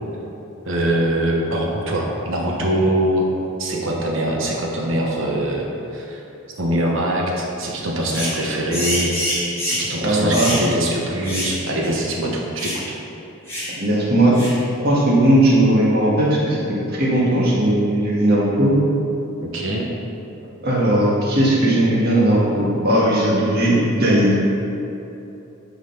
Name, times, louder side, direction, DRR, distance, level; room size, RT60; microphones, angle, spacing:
voice 1, 0.6-3.3 3.6-6.2 6.6-9.1 9.6-12.8 19.4-19.9, right 1 dB, 60° right, -2 dB, 1.1 m, -23 dB
sound 1, 8.1-8.4 8.7-9.9 10.3-10.7 11.2-11.6 11.8-11.9 12.6-12.8 13.5-13.7 14.3-14.6, equal, 10° left, 1.9 m, -26 dB
voice 2, 10.0-10.5 13.7-14.4 14.8-18.8 20.6-24.4, right 1 dB, 45° right, -6 dB, 1.8 m, -17 dB
9.7 x 4.0 x 5.4 m, 2.9 s
head